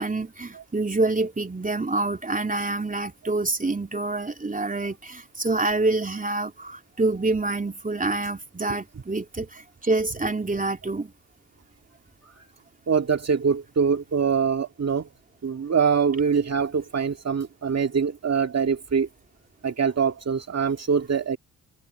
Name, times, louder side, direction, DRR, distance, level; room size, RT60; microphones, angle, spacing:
voice 1, 0.0-11.1, right 2 dB, 20° right, 3.2 m, -27 dB
voice 2, 12.9-15.1 15.4-19.1 19.6-21.4, right 6 dB, 40° right, 2.2 m, -24 dB
hypercardioid pair, 40°, 41 cm